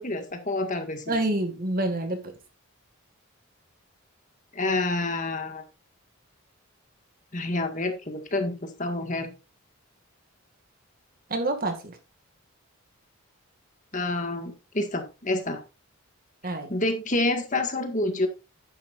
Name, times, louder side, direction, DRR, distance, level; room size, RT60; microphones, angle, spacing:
voice 1, 0.0-1.2 4.5-5.6 7.3-9.3 13.9-15.6 16.7-18.3, left 2 dB, 35° left, 6 dB, 1.9 m, -28 dB
voice 2, 1.1-2.3 11.3-12.0 16.4-16.7, right 2 dB, 40° right, 6 dB, 2.1 m, -27 dB
10.5 x 10.0 x 2.6 m, 0.28 s
head